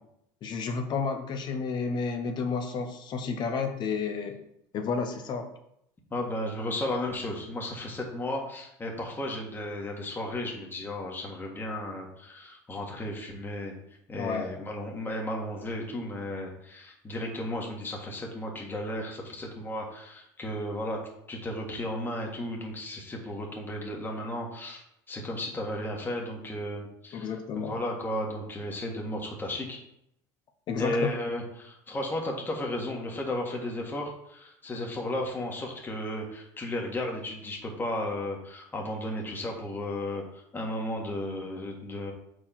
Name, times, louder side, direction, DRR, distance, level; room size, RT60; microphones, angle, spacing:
voice 1, 0.4-4.4 4.7-5.5 14.2-14.6 27.1-27.8 30.7-31.0, left 5 dB, 50° left, 5 dB, 0.9 m, -31 dB
voice 2, 6.1-13.7 14.1-21.0 21.3-29.8 30.8-42.1, left 1 dB, 20° left, 0 dB, 1.7 m, -34 dB
4.7 x 4.2 x 5.8 m, 0.76 s
supercardioid pair, 95°, 10 cm